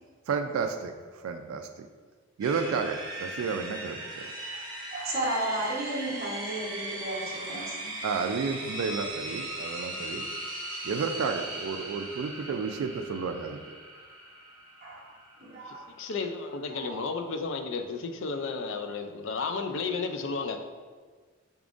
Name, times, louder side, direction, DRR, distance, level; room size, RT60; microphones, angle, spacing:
voice 1, 0.3-1.9 2.4-4.3 8.0-10.3 10.8-13.6, right 5 dB, 75° right, 6 dB, 0.3 m, -31 dB
sound 1, 2.4-16.4, right 1 dB, 20° right, 1.0 m, -39 dB
voice 2, 4.9-8.0 14.8-15.1 15.4-15.8 16.7-17.0, right 1 dB, 45° right, -4 dB, 1.0 m, -33 dB
voice 3, 15.7-20.6, left 4 dB, 60° left, 5 dB, 0.4 m, -33 dB
5.9 x 3.6 x 2.5 m, 1.5 s
head